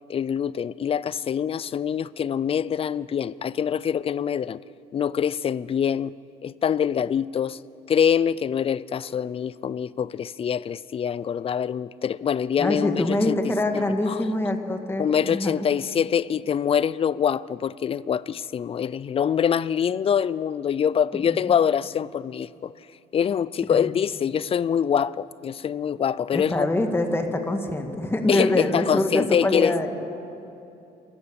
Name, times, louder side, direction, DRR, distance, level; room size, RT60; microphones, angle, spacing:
voice 1, 0.1-4.6 4.9-6.1 6.4-7.6 7.9-13.4 14.1-14.3 15.0-22.7 23.1-26.7 28.3-29.8, left 8 dB, 35° left, 0.5 m, -24 dB
voice 2, 12.6-15.7 21.1-21.5 23.7-23.9 26.3-29.9, left 1 dB, 15° left, 2.0 m, -25 dB
26.5 x 14.5 x 7.0 m
cardioid pair, 110°, 17 cm